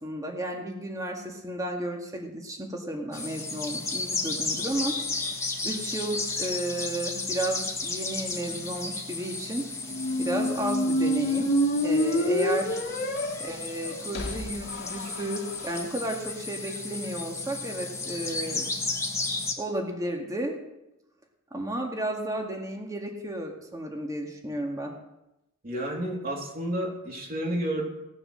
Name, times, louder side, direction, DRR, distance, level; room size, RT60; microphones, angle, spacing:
voice 1, 0.0-5.0 5.6-9.7 10.2-11.6 11.8-12.8 13.4-18.7 19.6-20.6 21.5-24.9, right 1 dB, 15° right, 1 dB, 2.0 m, -33 dB
sound 1, 3.1-19.5, left 3 dB, 15° left, 1.7 m, -34 dB
sound 2, 9.9-15.8, equal, 60° left, 1.6 m, -28 dB
voice 2, 25.6-27.9, right 1 dB, 45° right, -1 dB, 3.3 m, -30 dB
17.5 x 6.8 x 6.4 m, 0.90 s
head